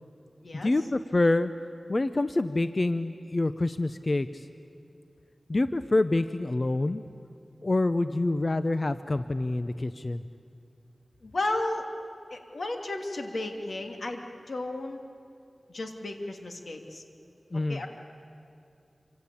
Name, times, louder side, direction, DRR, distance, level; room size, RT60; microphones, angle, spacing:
voice 1, 0.5-1.5 1.9-4.5 5.5-7.0 7.6-10.2 17.5-17.8, left 2 dB, 40° left, 11 dB, 0.8 m, -26 dB
voice 2, 11.2-11.9 12.3-15.0 15.7-17.0 17.7-17.9, left 2 dB, 70° left, 3 dB, 2.9 m, -33 dB
27.0 x 26.0 x 8.5 m, 2.6 s
wide cardioid pair, 75°, 0 cm